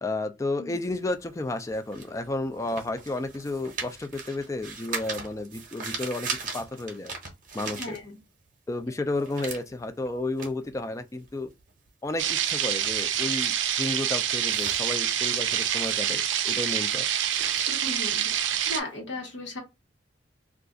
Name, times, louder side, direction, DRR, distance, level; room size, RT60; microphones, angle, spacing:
voice 1, 0.0-7.1 7.5-8.0 8.7-11.5 12.0-17.1, left 2 dB, 15° left, 0.3 m, -32 dB
sound 1, 0.7-8.5 8.8-18.9, right 4 dB, 45° right, 0.8 m, -40 dB
voice 2, 7.8-8.2 17.7-18.3 18.7-19.6, left 2 dB, 75° left, 1.1 m, -36 dB
sound 2, 12.2-18.8, right 10 dB, 80° right, 0.4 m, -26 dB
2.4 x 2.4 x 3.7 m
head